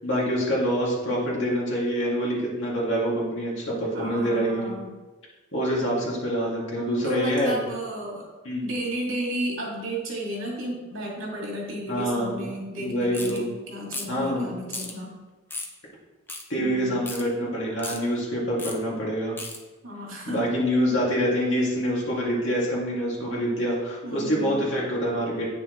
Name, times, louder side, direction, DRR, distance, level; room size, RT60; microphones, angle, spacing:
voice 1, 0.0-4.7 5.5-7.6 8.4-8.6 11.9-12.4 12.8-13.4 14.1-14.5 16.5-19.4 20.3-25.5, equal, 65° left, -5 dB, 2.5 m, -26 dB
voice 2, 3.9-4.9 7.0-8.3 8.6-15.2 16.6-17.0 19.8-20.6 24.0-24.7, right 1 dB, 75° right, -3 dB, 2.5 m, -33 dB
sound 1, 13.1-13.4 13.9-14.2 14.7-14.9 15.5-15.7 16.3-16.4 17.1-17.2 17.8-18.0 18.6-18.8 19.4-19.6, left 2 dB, 10° left, 0.6 m, -34 dB
9.1 x 6.5 x 3.3 m, 1.2 s
head